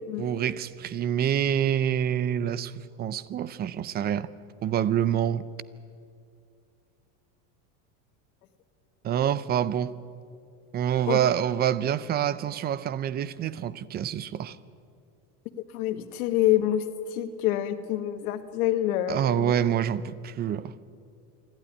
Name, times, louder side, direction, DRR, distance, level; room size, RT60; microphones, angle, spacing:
voice 1, 0.2-4.3 4.6-5.5 9.0-10.0 10.7-14.6 19.1-20.7, right 10 dB, 20° right, 0.5 m, -27 dB
voice 2, 15.7-16.8 17.1-19.5, left 13 dB, 70° left, 1.7 m, -26 dB
27.0 x 12.0 x 9.8 m
supercardioid pair, 130°, 45 cm